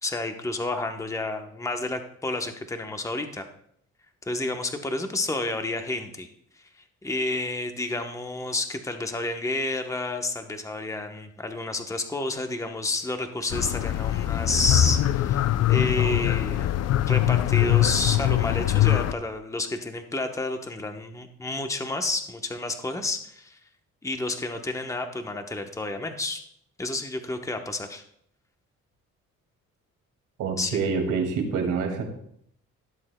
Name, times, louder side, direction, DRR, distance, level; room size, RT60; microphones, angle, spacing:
voice 1, 0.0-3.5 4.3-6.3 7.0-23.6 24.0-26.4 26.8-28.0 30.6-30.9, left 2 dB, 10° left, 6 dB, 0.9 m, -30 dB
sound 1, 13.5-19.1, left 12 dB, 60° left, 0.5 m, -22 dB
voice 2, 30.4-32.0, right 5 dB, 85° right, 3 dB, 2.2 m, -26 dB
15.5 x 7.6 x 2.2 m, 0.69 s
cardioid pair, 90°, 30 cm